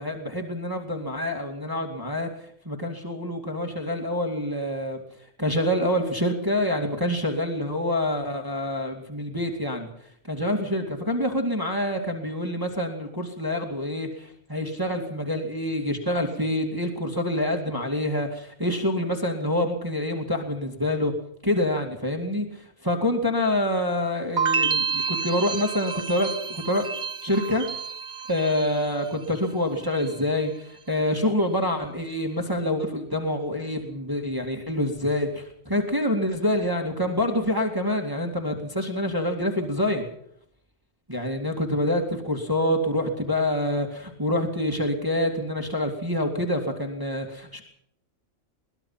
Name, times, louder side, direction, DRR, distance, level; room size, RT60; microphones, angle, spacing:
voice 1, 0.0-2.3 2.6-5.0 5.4-9.9 10.3-21.1 21.4-26.8 27.2-27.7 28.3-40.1 41.1-47.6, left 1 dB, 15° right, 1 dB, 2.5 m, -26 dB
sound 1, 24.4-29.4 29.7-30.3, right 5 dB, 40° right, 1.0 m, -29 dB
22.5 x 20.0 x 5.8 m, 0.71 s
omnidirectional pair, 1.3 m